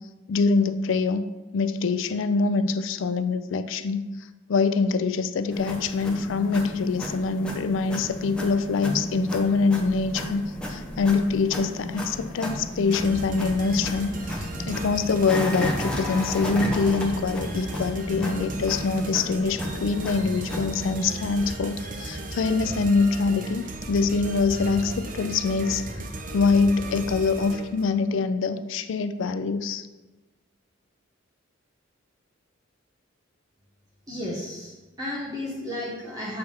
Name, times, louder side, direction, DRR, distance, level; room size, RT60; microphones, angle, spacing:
voice 1, 0.3-1.3 1.5-4.1 4.5-25.8 26.3-29.8, left 4 dB, 70° left, 12 dB, 0.4 m, -24 dB
sound 1, 5.5-21.0, left 1 dB, 5° left, 0.8 m, -33 dB
sound 2, 12.9-27.9, right 1 dB, 40° right, 0.6 m, -36 dB
voice 2, 34.1-36.4, left 1 dB, 20° right, -6 dB, 1.0 m, -33 dB
6.8 x 3.4 x 5.5 m, 1.2 s
head